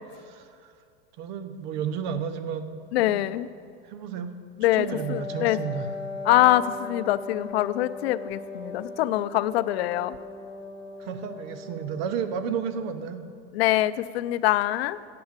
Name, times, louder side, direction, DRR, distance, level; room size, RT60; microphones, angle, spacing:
voice 1, 0.2-0.7 1.2-2.7 3.1-3.3 3.8-4.4 4.7-5.9 11.0-13.2, right 7 dB, 45° right, 9 dB, 0.8 m, -32 dB
voice 2, 2.9-3.5 4.6-5.6 6.3-10.2 13.5-15.0, left 15 dB, 75° left, 15 dB, 0.5 m, -24 dB
Wind instrument woodwind instrument, 4.8-12.9, left 3 dB, 15° left, 1.2 m, -39 dB
8.7 x 7.7 x 7.3 m, 2.3 s
supercardioid pair, 165°, 31 cm